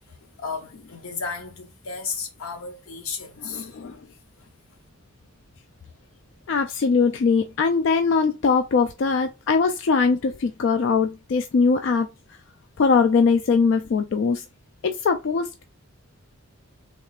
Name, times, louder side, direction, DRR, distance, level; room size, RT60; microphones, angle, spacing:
voice 1, 0.1-3.8, left 5 dB, 90° left, 0.9 m, -34 dB
voice 2, 3.5-4.0 6.5-12.1 12.8-14.4 14.8-15.6, left 5 dB, 60° left, 0.3 m, -21 dB
3.6 x 3.2 x 2.3 m
head